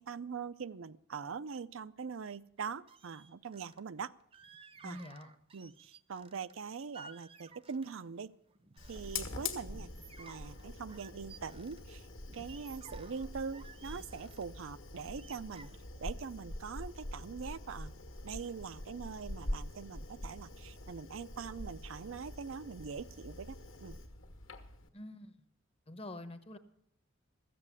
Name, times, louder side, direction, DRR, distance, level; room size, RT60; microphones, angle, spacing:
voice 1, 0.0-4.1 4.8-5.0 5.5-8.3 8.9-9.9 10.2-12.1 12.3-15.7 16.0-18.0 18.2-23.6 23.8-24.0, right 5 dB, 70° right, 14 dB, 0.5 m, -43 dB
sound 1, 2.6-3.8 4.3-6.5 6.9-8.1 8.5-9.1 9.5-11.8 12.3-14.4 14.9-17.1 17.4-17.7, right 4 dB, 25° right, 0.7 m, -56 dB
voice 2, 4.8-5.3 24.9-25.4 25.9-26.6, left 1 dB, 30° left, 11 dB, 0.9 m, -46 dB
Fire, 8.8-24.9, left 2 dB, 65° left, 1.7 m, -45 dB
14.5 x 7.7 x 9.6 m, 0.69 s
head